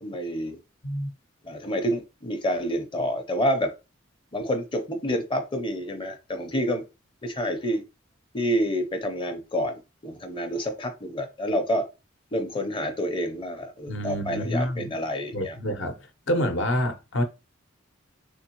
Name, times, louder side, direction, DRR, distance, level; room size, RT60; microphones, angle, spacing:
voice 1, 0.0-0.6 1.4-3.7 4.3-6.8 7.2-7.8 8.3-11.9 12.3-15.6, equal, 25° left, 0.6 m, -28 dB
voice 2, 13.9-14.9 15.3-16.0 16.3-17.2, equal, 65° left, 0.8 m, -27 dB
3.5 x 3.4 x 2.9 m
head